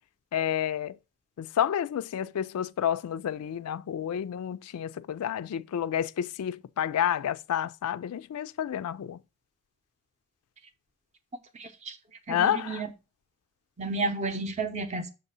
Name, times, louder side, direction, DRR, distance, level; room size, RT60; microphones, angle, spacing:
voice 1, 0.3-1.0 1.4-9.2 12.3-12.8, left 9 dB, 85° left, 0.3 m, -30 dB
voice 2, 11.5-12.0 12.3-12.9 13.8-15.1, right 3 dB, 30° right, 0.7 m, -32 dB
6.6 x 2.7 x 5.4 m
head